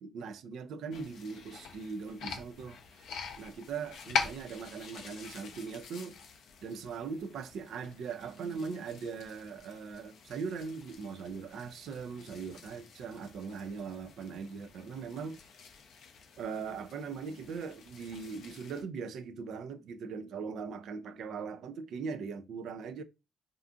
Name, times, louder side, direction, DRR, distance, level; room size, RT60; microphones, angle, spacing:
voice 1, 0.0-2.8 3.4-6.2 6.6-15.4 16.4-23.0, right 5 dB, 75° right, 0.3 m, -40 dB
sound 1, 0.9-18.8, left 6 dB, 75° left, 0.4 m, -44 dB
2.4 x 2.4 x 2.4 m
supercardioid pair, 55°, 0 cm